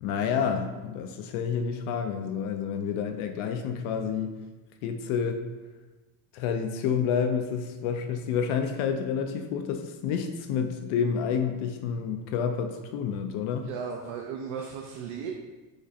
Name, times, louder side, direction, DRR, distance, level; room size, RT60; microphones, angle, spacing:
voice 1, 0.0-4.3 4.8-5.4 6.3-13.7, left 7 dB, 80° left, 5 dB, 0.5 m, -29 dB
voice 2, 13.6-15.3, right 6 dB, 75° right, 1 dB, 0.5 m, -35 dB
4.9 x 2.1 x 2.7 m, 1.2 s
cardioid pair, 110°, 48 cm